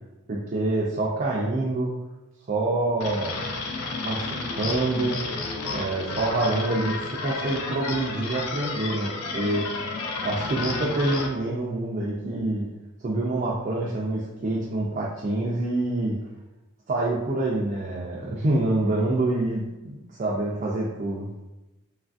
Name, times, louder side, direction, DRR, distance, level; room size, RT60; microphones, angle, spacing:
voice 1, 0.3-1.9 2.5-3.3 4.0-5.2 5.6-9.6 10.2-12.7 13.0-16.2 16.9-21.3, right 2 dB, 40° right, -4 dB, 0.3 m, -26 dB
sound 1, 3.0-11.3, left 3 dB, 85° left, 0.4 m, -32 dB
3.1 x 2.4 x 2.3 m, 1.0 s
head